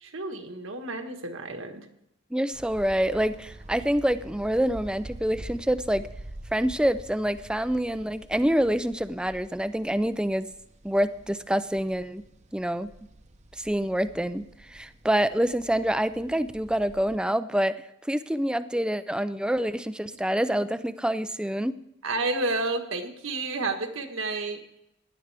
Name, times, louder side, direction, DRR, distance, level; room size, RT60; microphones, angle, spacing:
voice 1, 0.0-1.8 22.0-24.6, right 2 dB, 75° right, 4 dB, 1.5 m, -30 dB
voice 2, 2.3-6.0 6.5-10.5 10.8-12.2 12.5-12.9 13.6-17.7 18.1-21.8, equal, 5° right, 13 dB, 0.4 m, -26 dB
sound 1, 2.5-17.2, right 1 dB, 35° right, 0.8 m, -47 dB
17.0 x 11.0 x 3.4 m, 0.82 s
head